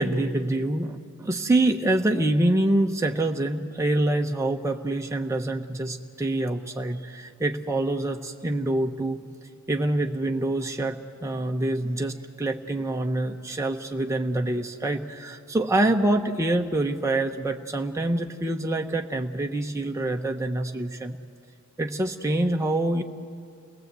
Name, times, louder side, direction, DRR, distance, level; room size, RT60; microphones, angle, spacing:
voice 1, 0.0-9.2 9.7-21.2 21.8-23.0, right 1 dB, 10° right, 3 dB, 0.9 m, -26 dB
29.0 x 19.5 x 8.2 m, 2.3 s
wide cardioid pair, 130°, 31 cm